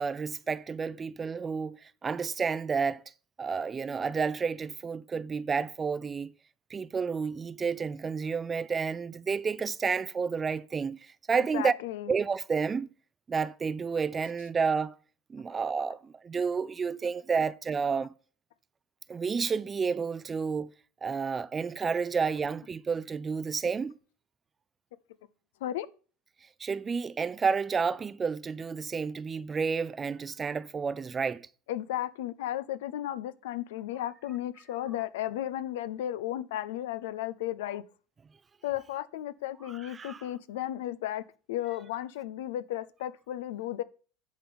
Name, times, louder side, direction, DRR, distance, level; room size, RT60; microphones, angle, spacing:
voice 1, 0.0-3.0 3.4-6.3 6.7-11.7 12.1-12.9 13.3-15.0 15.3-18.1 19.1-20.7 21.0-24.0 26.6-31.5 39.9-40.2, right 5 dB, 25° right, 0.5 m, -30 dB
voice 2, 11.4-12.1 25.6-25.9 31.7-37.8 38.6-41.2 41.5-43.8, left 13 dB, 80° left, 0.6 m, -34 dB
10.5 x 3.9 x 6.9 m
supercardioid pair, 110°, 0 cm